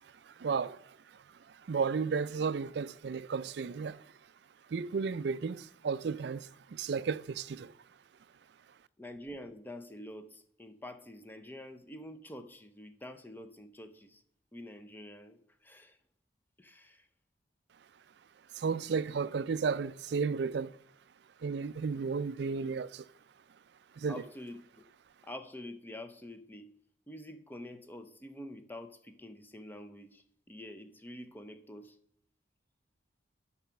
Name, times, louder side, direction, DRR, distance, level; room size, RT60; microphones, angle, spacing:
voice 1, 0.0-4.1 4.7-7.7 18.5-20.7 21.4-23.1 23.9-24.2, right 5 dB, 60° right, 0.4 m, -34 dB
voice 2, 9.0-14.2 14.5-16.0 16.6-17.1 24.1-24.8 25.3-26.7 27.1-32.0, left 1 dB, 10° left, 0.6 m, -47 dB
7.2 x 6.1 x 5.7 m
head